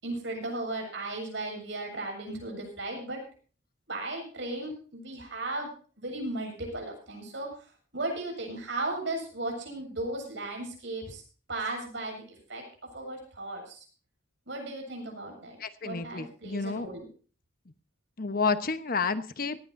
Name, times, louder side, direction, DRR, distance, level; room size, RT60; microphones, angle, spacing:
voice 1, 0.0-3.2 3.9-5.7 6.0-11.2 11.5-13.9 14.5-15.6 15.8-17.1, right 2 dB, 70° right, 2 dB, 7.5 m, -36 dB
voice 2, 15.6-16.9 18.2-19.6, left 4 dB, 50° left, 11 dB, 1.0 m, -30 dB
18.5 x 15.5 x 2.6 m, 0.39 s
head